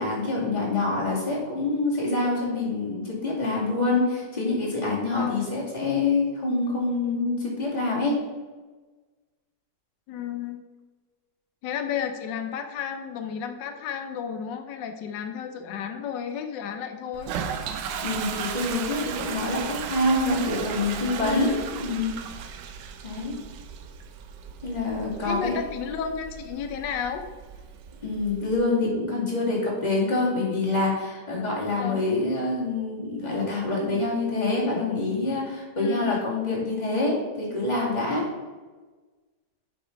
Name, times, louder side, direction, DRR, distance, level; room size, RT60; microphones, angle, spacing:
voice 1, 0.0-8.2 18.0-22.1 23.0-23.3 24.6-25.5 28.0-38.3, left 2 dB, 25° left, -5 dB, 2.4 m, -26 dB
voice 2, 5.1-5.5 10.1-10.6 11.6-17.3 21.2-21.6 25.2-27.2 31.8-32.0 35.8-36.2, left 7 dB, 90° left, 6 dB, 1.4 m, -32 dB
Toilet flush, 17.1-28.6, right 7 dB, 85° right, 1.3 m, -36 dB
6.9 x 5.2 x 5.1 m, 1.3 s
omnidirectional pair, 1.9 m